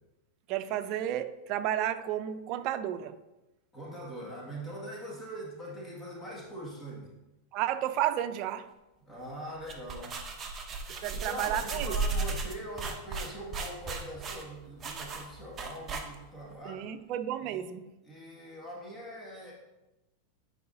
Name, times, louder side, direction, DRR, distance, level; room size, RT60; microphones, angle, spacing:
voice 1, 0.5-3.1 7.5-8.7 10.9-12.0 16.6-17.9, right 11 dB, 50° right, 10 dB, 0.5 m, -32 dB
voice 2, 3.7-7.1 9.0-10.1 11.1-16.8 17.4-17.6 18.0-19.5, equal, 15° left, -4 dB, 2.0 m, -42 dB
sound 1, 9.5-16.4, right 3 dB, 25° right, 0.8 m, -36 dB
9.9 x 4.8 x 2.7 m, 1.0 s
supercardioid pair, 125°, 0 cm